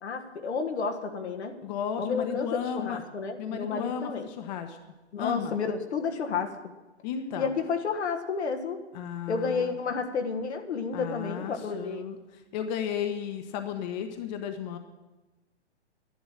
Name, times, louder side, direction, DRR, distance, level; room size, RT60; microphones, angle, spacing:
voice 1, 0.0-1.6 2.0-4.3 5.1-6.5 7.4-8.8 9.3-12.0, left 5 dB, 70° left, 4 dB, 1.6 m, -31 dB
voice 2, 1.6-3.0 3.4-4.8 5.2-5.5 7.0-7.5 8.9-9.7 10.9-12.2 12.5-14.8, left 8 dB, 40° left, 6 dB, 1.2 m, -34 dB
11.0 x 10.5 x 7.4 m, 1.1 s
hypercardioid pair, 125°, 34 cm